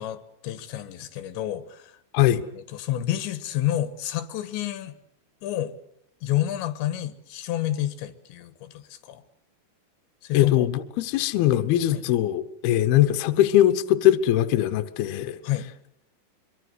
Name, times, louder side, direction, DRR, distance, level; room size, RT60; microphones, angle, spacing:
voice 1, 0.0-1.9 2.6-4.9 5.4-5.8 6.2-9.2 10.2-10.7 11.9-12.0 15.4-15.7, left 13 dB, 90° left, 3.7 m, -29 dB
voice 2, 10.3-15.4, left 12 dB, 70° left, 2.8 m, -21 dB
24.0 x 24.0 x 8.2 m
omnidirectional pair, 5.0 m